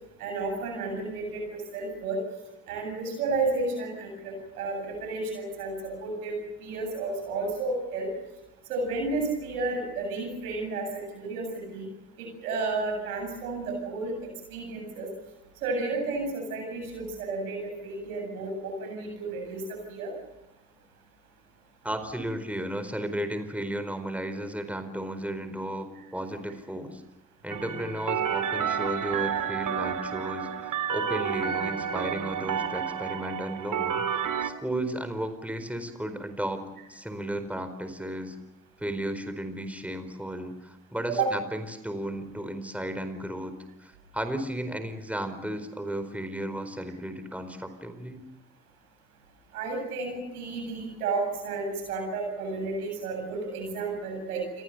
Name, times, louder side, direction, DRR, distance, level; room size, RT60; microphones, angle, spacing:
voice 1, 0.2-1.4 1.7-2.2 2.7-8.1 8.7-11.9 12.2-15.1 15.6-20.1 26.0-26.1 28.3-28.4 41.1-41.3 49.5-54.6, right 3 dB, 80° right, 3 dB, 8.0 m, -32 dB
voice 2, 21.8-27.0 27.4-36.6 36.9-38.4 38.8-48.3, right 1 dB, 5° right, 9 dB, 4.4 m, -34 dB
sound 1, 27.5-34.5, right 8 dB, 45° right, 2.6 m, -30 dB
29.0 x 22.5 x 6.8 m, 0.99 s
hypercardioid pair, 50°, 44 cm